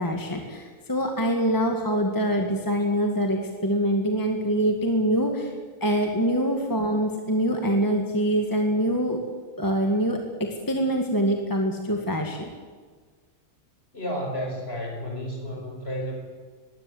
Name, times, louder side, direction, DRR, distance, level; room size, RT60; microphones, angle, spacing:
voice 1, 0.0-5.5 5.8-9.2 9.6-10.2 10.7-12.5, equal, 15° left, 3 dB, 1.8 m, -24 dB
voice 2, 13.9-16.2, equal, 45° left, 2 dB, 5.3 m, -32 dB
21.5 x 16.0 x 7.9 m, 1.5 s
omnidirectional pair, 1.4 m